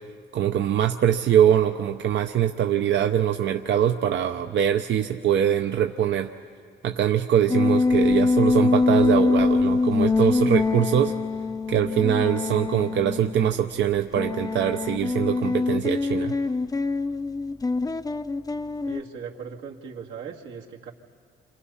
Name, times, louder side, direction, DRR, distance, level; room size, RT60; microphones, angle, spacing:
voice 1, 0.3-6.3 6.8-11.1 11.7-16.4, right 10 dB, 65° right, 5 dB, 0.8 m, -23 dB
sound 1, 7.5-13.5 14.1-19.0, left 3 dB, 20° left, 0.6 m, -24 dB
voice 2, 18.8-20.9, right 6 dB, 90° right, -2 dB, 2.3 m, -38 dB
29.5 x 26.5 x 5.7 m, 2.1 s
cardioid pair, 90°, 20 cm